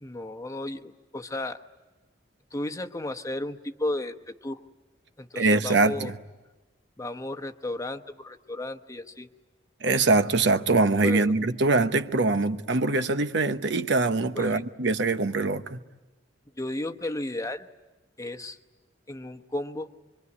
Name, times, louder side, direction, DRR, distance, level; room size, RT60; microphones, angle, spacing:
voice 1, 0.0-1.6 2.5-4.6 5.2-6.1 7.0-9.3 11.0-11.3 14.3-14.6 16.6-17.7 18.2-18.6 19.1-19.9, left 1 dB, 15° left, 1.0 m, -34 dB
voice 2, 5.3-6.1 9.8-15.8, right 3 dB, 65° right, 1.0 m, -23 dB
25.5 x 24.0 x 9.7 m
head